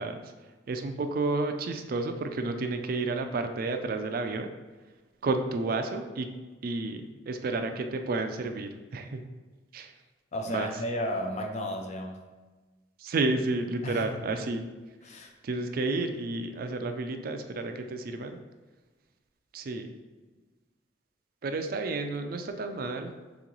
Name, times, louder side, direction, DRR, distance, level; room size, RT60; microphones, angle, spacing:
voice 1, 0.0-4.5 5.2-6.3 6.6-9.2 9.7-9.9 10.4-10.8 13.0-14.7 15.4-18.4 19.5-19.9 21.4-23.1, right 3 dB, 55° right, 6 dB, 0.4 m, -31 dB
voice 2, 10.3-12.2 13.8-14.2 15.1-15.3, equal, 40° left, 3 dB, 0.4 m, -33 dB
3.5 x 3.0 x 3.8 m, 1.3 s
head